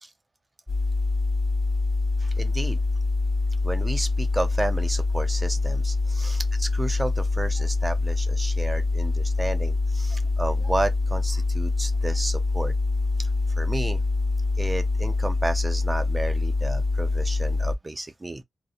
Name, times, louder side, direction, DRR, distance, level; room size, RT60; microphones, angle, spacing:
sound 1, 0.7-17.7, left 3 dB, 10° left, 0.7 m, -25 dB
voice 1, 2.2-2.8 3.6-12.7 13.2-13.3 13.6-14.0 14.6-18.4, right 2 dB, 25° right, 0.4 m, -32 dB
2.7 x 2.0 x 2.4 m
wide cardioid pair, 95°, 0 cm